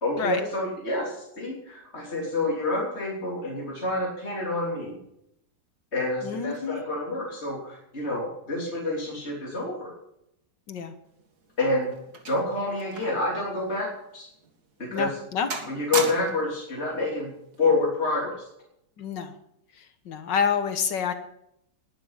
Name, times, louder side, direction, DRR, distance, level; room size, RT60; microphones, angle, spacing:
voice 1, 0.0-5.0 5.9-9.9 11.6-11.9 12.3-14.3 14.8-15.1 15.7-17.3 17.6-18.5, left 2 dB, 35° left, -4 dB, 3.6 m, -28 dB
voice 2, 6.2-6.8 10.7-10.9 14.9-15.5 19.0-19.3 19.7-21.1, left 7 dB, 80° left, 8 dB, 1.9 m, -28 dB
sound 1, 11.2-13.3 13.6-13.8 14.4-14.5 15.0-15.3 15.5-16.6 17.5-17.8, right 4 dB, 60° right, 2.6 m, -35 dB
21.0 x 10.5 x 5.7 m, 0.79 s
omnidirectional pair, 1.9 m